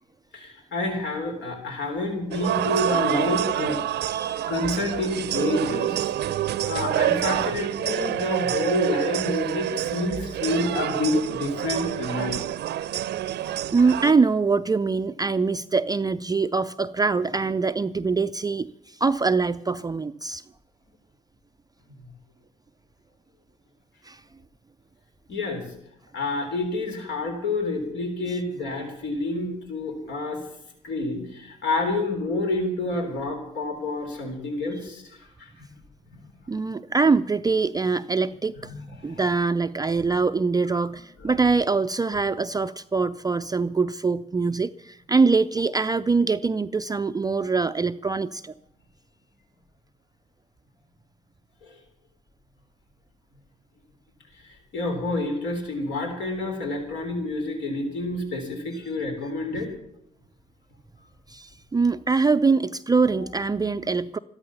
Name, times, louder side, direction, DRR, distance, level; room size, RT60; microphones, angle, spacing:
voice 1, 0.3-3.8 4.5-6.1 6.7-12.4 25.3-25.6 26.1-30.4 30.8-35.5 38.6-39.2 40.7-40.8 51.6-51.7 54.4-59.7, left 2 dB, 70° left, 3 dB, 3.5 m, -28 dB
sound 1, 2.3-14.1, right 12 dB, 60° right, 0.7 m, -27 dB
voice 2, 4.1-4.5 5.3-5.4 13.7-20.4 24.0-24.2 36.5-38.5 39.0-48.5 61.3-64.2, right 4 dB, 20° right, 10 dB, 0.5 m, -23 dB
13.5 x 13.0 x 7.1 m, 0.77 s
hypercardioid pair, 50°, 20 cm